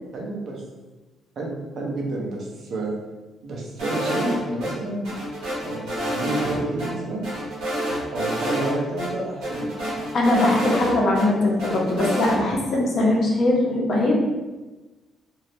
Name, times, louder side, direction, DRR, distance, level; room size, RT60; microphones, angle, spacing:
voice 1, 0.1-0.6 1.4-2.9 3.4-5.1 5.6-7.2 8.1-9.8, right 2 dB, 65° right, -2 dB, 0.7 m, -29 dB
sound 1, 3.8-4.7 5.0-6.5 6.8-6.9 7.2-8.7 9.0-9.1 9.4-11.2 11.6-12.4, equal, 85° right, 1.1 m, -28 dB
voice 2, 10.1-14.1, left 2 dB, 60° left, -2 dB, 0.7 m, -21 dB
2.6 x 2.0 x 3.0 m, 1.2 s
supercardioid pair, 60°, 0 cm